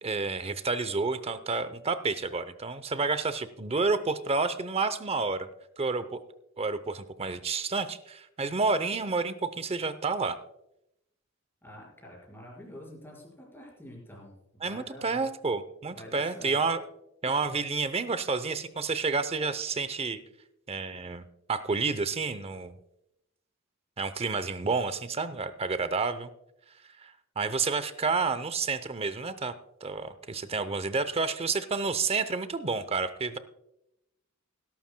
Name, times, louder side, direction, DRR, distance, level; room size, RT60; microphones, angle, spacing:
voice 1, 0.0-5.5 5.8-6.2 6.6-10.4 14.6-16.8 17.2-20.2 20.7-22.7 24.0-26.3 27.0-29.5 29.8-33.4, right 4 dB, 30° right, 13 dB, 0.7 m, -30 dB
voice 2, 11.6-15.2 15.9-16.6, equal, 10° left, -2 dB, 5.0 m, -47 dB
20.5 x 12.0 x 2.2 m, 0.84 s
head